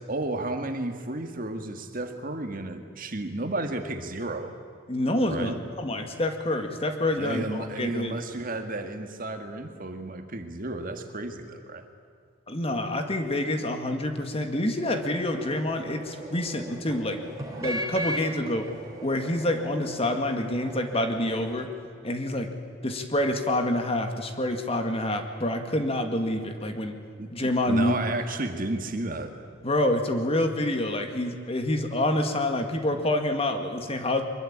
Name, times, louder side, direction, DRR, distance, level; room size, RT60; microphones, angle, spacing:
voice 1, 0.1-4.6 5.3-5.6 7.2-11.8 27.2-27.3 27.7-29.4, right 2 dB, 45° right, 6 dB, 1.9 m, -32 dB
voice 2, 4.9-8.2 12.5-17.2 17.6-18.7 19.0-21.7 22.0-22.5 22.8-27.0 27.3-28.0 29.6-34.2, left 1 dB, 30° left, 6 dB, 2.0 m, -27 dB
sound 1, 14.8-21.7, right 1 dB, 20° right, 3.4 m, -38 dB
23.5 x 22.0 x 8.7 m, 2.2 s
head